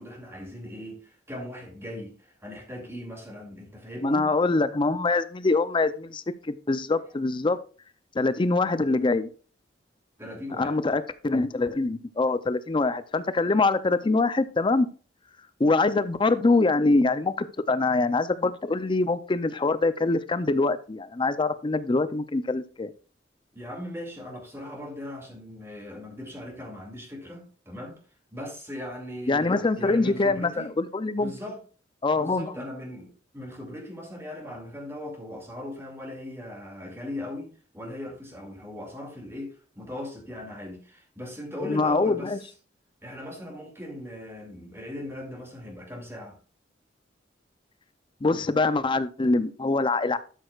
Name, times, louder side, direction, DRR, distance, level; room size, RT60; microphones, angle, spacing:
voice 1, 0.0-4.3 10.2-10.7 23.5-28.0 28.3-30.7 31.2-31.6 32.1-42.4 43.0-46.4, left 1 dB, 15° right, 2.3 m, -39 dB
voice 2, 4.0-7.6 8.2-9.3 10.6-14.9 15.6-22.9 29.3-31.3 32.0-32.5 41.7-42.4 48.2-50.2, left 3 dB, 30° left, 0.5 m, -24 dB
12.0 x 6.4 x 2.4 m
head